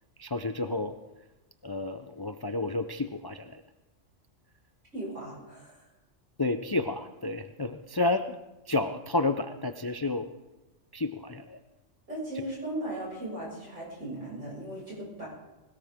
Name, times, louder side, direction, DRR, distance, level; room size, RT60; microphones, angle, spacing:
voice 1, 0.2-0.9 1.6-3.6 6.4-8.3 8.7-10.3 10.9-11.6, left 2 dB, 35° left, 8 dB, 0.4 m, -30 dB
voice 2, 4.9-5.9 12.1-15.3, right 1 dB, 85° right, -5 dB, 7.4 m, -37 dB
20.5 x 18.5 x 3.7 m, 1.0 s
omnidirectional pair, 1.3 m